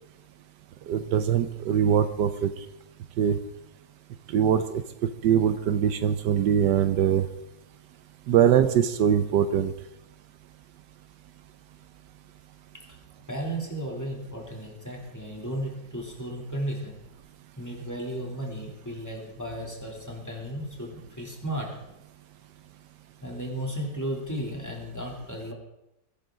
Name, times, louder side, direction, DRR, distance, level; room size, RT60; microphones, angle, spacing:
voice 1, 0.9-2.5 3.2-3.4 4.3-4.6 5.2-7.2 8.3-9.7, right 9 dB, 80° right, 10 dB, 1.3 m, -22 dB
voice 2, 13.3-16.9 17.6-21.7 23.2-25.5, right 1 dB, 10° left, -1 dB, 2.9 m, -34 dB
20.0 x 12.0 x 3.8 m, 0.86 s
omnidirectional pair, 1.9 m